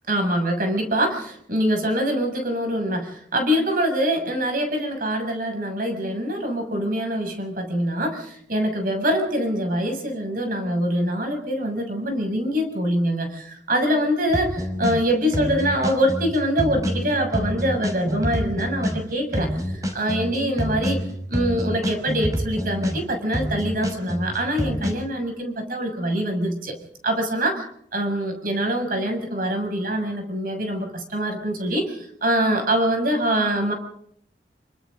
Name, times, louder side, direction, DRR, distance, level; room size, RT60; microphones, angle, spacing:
voice 1, 0.1-26.8 27.0-27.7 27.9-33.7, equal, 55° right, 4 dB, 6.8 m, -24 dB
sound 1, 14.3-15.0 15.3-19.0 19.3-23.0 23.3-24.9, equal, 20° right, 5.0 m, -27 dB
29.5 x 25.0 x 3.9 m, 0.66 s
head